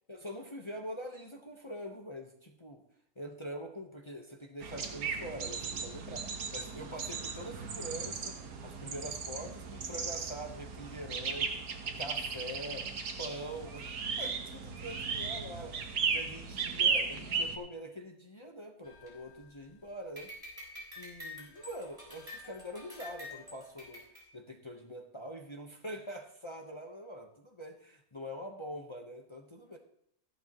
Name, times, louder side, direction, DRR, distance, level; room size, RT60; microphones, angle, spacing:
voice 1, 0.1-2.8 3.2-8.3 8.6-11.6 12.0-12.9 13.2-13.9 14.2-20.3 21.0-24.0 24.3-29.8, equal, 20° left, 2 dB, 1.0 m, -44 dB
sound 1, 4.6-17.6, right 5 dB, 90° right, 1.6 m, -36 dB
sound 2, 18.8-19.7 20.2-24.2, left 2 dB, 25° right, 4.3 m, -48 dB
14.5 x 11.5 x 3.0 m, 0.71 s
omnidirectional pair, 1.5 m